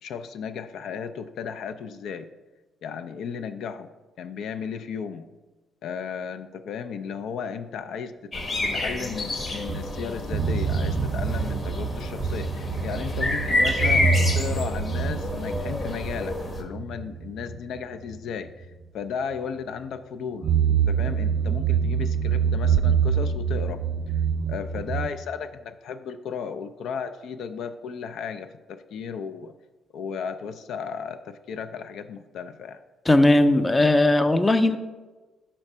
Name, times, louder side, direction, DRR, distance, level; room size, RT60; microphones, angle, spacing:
voice 1, 0.0-2.3 2.8-3.9 4.2-5.3 5.8-8.1 8.6-18.7 18.9-23.8 24.5-29.5 29.9-32.8, left 6 dB, 75° left, 10 dB, 0.3 m, -34 dB
sound 1, 8.3-16.6, left 2 dB, 35° left, 1.1 m, -29 dB
sound 2, 9.7-18.2 18.6-18.7 20.4-25.1, right 6 dB, 60° right, 0.3 m, -26 dB
voice 2, 33.1-34.8, left 2 dB, 20° left, 10 dB, 0.5 m, -18 dB
4.9 x 4.3 x 5.5 m, 1.2 s
cardioid pair, 90°, 0 cm